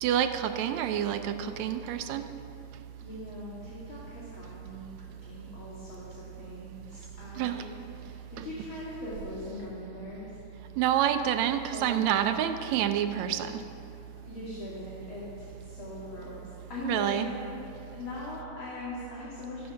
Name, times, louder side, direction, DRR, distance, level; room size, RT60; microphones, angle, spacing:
voice 1, 0.0-2.3 7.4-7.6 10.8-13.6 16.8-17.3, right 10 dB, 80° right, 9 dB, 1.8 m, -28 dB
voice 2, 3.0-7.7 8.0-10.3 11.7-12.5 13.9-17.6 17.9-19.7, left 2 dB, 45° left, -7 dB, 3.1 m, -41 dB
14.0 x 13.5 x 5.7 m, 2.8 s
omnidirectional pair, 3.3 m